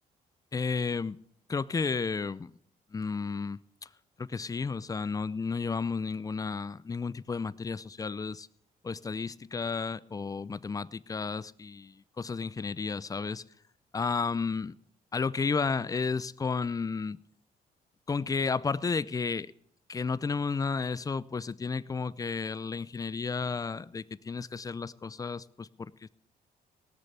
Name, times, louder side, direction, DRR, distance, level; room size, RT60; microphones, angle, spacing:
voice 1, 0.5-1.2 1.5-2.6 2.9-3.9 4.2-8.5 8.8-13.4 13.9-14.7 15.1-17.2 18.1-19.5 19.9-26.1, left 5 dB, 20° left, 19 dB, 0.5 m, -32 dB
18.0 x 6.7 x 8.2 m, 0.65 s
cardioid pair, 105°, 16 cm